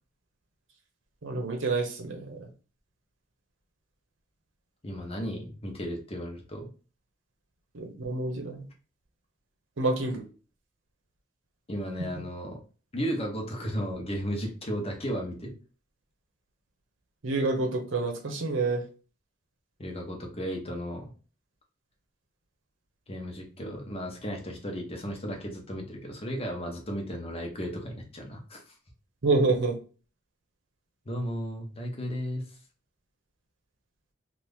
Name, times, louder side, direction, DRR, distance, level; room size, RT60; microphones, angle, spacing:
voice 1, 1.2-2.5 7.7-8.7 9.8-10.2 17.2-18.8 29.2-29.7, right 3 dB, 75° right, 3 dB, 0.7 m, -28 dB
voice 2, 4.8-6.7 11.7-12.6 12.9-15.5 19.8-21.1 23.1-28.6 31.0-32.4, equal, 30° left, 1 dB, 0.9 m, -34 dB
2.8 x 2.5 x 3.4 m, 0.36 s
head